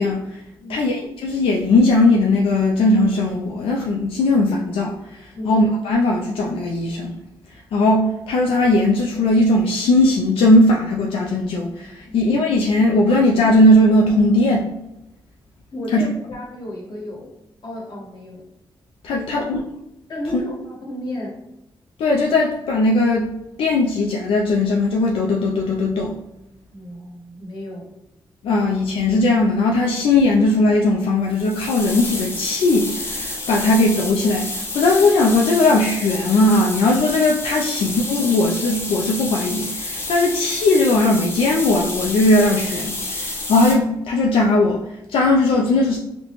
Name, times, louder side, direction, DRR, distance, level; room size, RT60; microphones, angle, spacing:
voice 1, 0.0-0.4 0.7-7.1 7.7-14.7 15.9-16.0 19.0-19.6 22.0-23.3 23.6-26.2 28.4-46.0, left 2 dB, 85° left, -1 dB, 0.4 m, -18 dB
voice 2, 15.7-17.3 17.6-18.4 19.1-19.5 20.1-21.4 26.7-27.9, left 1 dB, 55° left, -3 dB, 1.3 m, -33 dB
sound 1, 31.3-43.8, left 2 dB, 25° left, 0.8 m, -29 dB
4.0 x 2.1 x 2.9 m, 0.89 s
cardioid pair, 90°, 9 cm